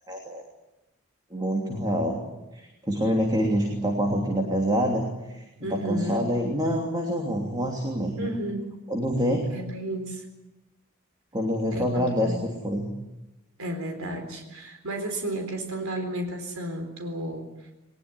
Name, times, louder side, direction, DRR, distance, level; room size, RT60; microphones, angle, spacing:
voice 1, 0.1-0.4 1.3-2.2 2.5-8.3 8.9-9.5 11.3-12.9, equal, 20° right, 1 dB, 3.0 m, -26 dB
voice 2, 5.6-6.2 8.2-8.7 9.5-10.2 11.7-12.4 13.6-17.5, right 1 dB, 75° right, 4 dB, 4.1 m, -33 dB
21.0 x 20.5 x 9.8 m, 1.0 s
head